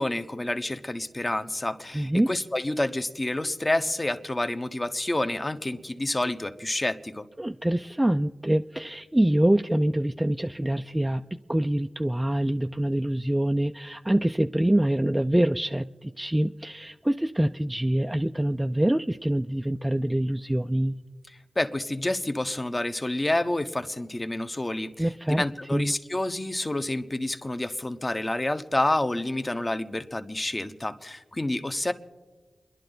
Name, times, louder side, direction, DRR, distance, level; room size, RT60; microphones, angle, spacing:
voice 1, 0.0-7.3 21.3-25.1 25.4-31.9, left 1 dB, 25° left, 9 dB, 1.0 m, -29 dB
voice 2, 1.9-2.3 7.4-11.2 11.5-21.0 25.0-25.4 25.7-25.9, right 1 dB, 15° right, 6 dB, 0.5 m, -25 dB
29.0 x 11.0 x 3.9 m, 1.3 s
cardioid pair, 45°, 0 cm